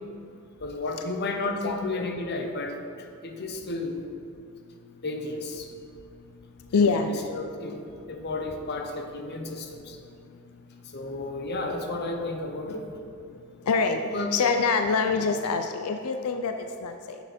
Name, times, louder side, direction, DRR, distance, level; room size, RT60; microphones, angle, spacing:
voice 1, 0.6-4.0 5.0-5.7 6.7-10.0 10.8-12.9 14.1-14.3, left 2 dB, 50° left, 4 dB, 0.9 m, -33 dB
voice 2, 1.6-2.1 6.7-7.1 13.7-14.0 14.3-17.2, left 4 dB, 90° left, 6 dB, 0.5 m, -25 dB
10.0 x 7.3 x 4.3 m, 2.6 s
head